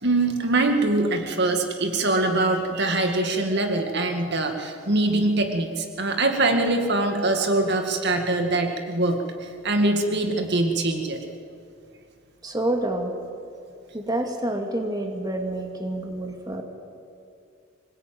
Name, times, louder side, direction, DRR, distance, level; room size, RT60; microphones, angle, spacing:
voice 1, 0.0-11.2, right 2 dB, 55° right, 4 dB, 2.1 m, -23 dB
voice 2, 12.4-13.1 13.9-16.6, right 1 dB, 20° right, 3 dB, 2.4 m, -28 dB
25.0 x 20.0 x 9.3 m, 2.4 s
head